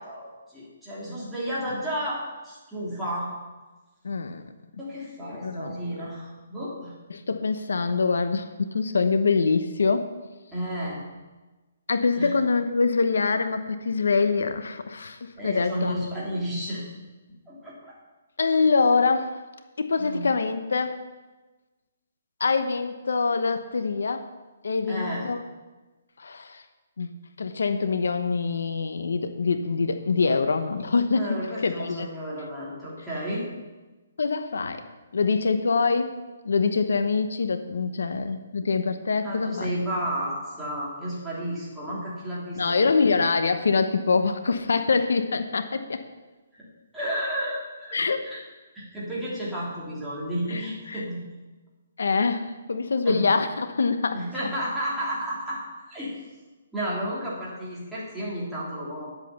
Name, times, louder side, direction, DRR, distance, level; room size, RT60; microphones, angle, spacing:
voice 1, 0.0-3.3 4.8-6.9 10.5-11.0 12.1-12.3 15.4-16.8 17.5-18.0 20.0-20.3 24.9-25.3 31.2-33.4 39.2-42.8 46.5-46.7 46.9-48.0 48.2-48.4 48.7-51.2 53.0-53.2 54.1-55.6 55.9-56.2 56.7-59.1, equal, 5° right, -9 dB, 3.2 m, -32 dB
voice 2, 4.0-4.4 5.4-5.8 7.1-10.1 11.9-15.9 18.4-19.4 19.8-21.0 22.4-24.3 24.6-25.4 26.2-26.6 27.0-27.1 27.4-31.3 31.6-32.1 34.2-34.9 35.1-39.8 42.6-46.0 47.9-48.3 50.5-50.6 50.9-51.0 52.0-54.2, left 4 dB, 80° left, 9 dB, 0.9 m, -24 dB
10.0 x 8.2 x 6.9 m, 1.2 s
hypercardioid pair, 165°, 0 cm